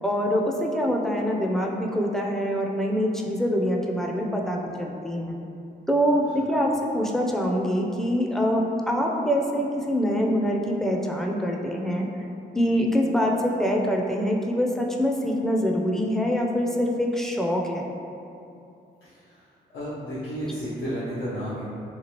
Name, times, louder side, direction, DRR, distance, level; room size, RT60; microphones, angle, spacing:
voice 1, 0.0-5.4 5.9-12.1 12.5-17.9, equal, ahead, -1 dB, 0.4 m, -25 dB
voice 2, 19.0-19.4 19.7-21.6, equal, 80° left, -12 dB, 0.7 m, -32 dB
3.0 x 2.3 x 2.9 m, 2.6 s
supercardioid pair, 50°, 20 cm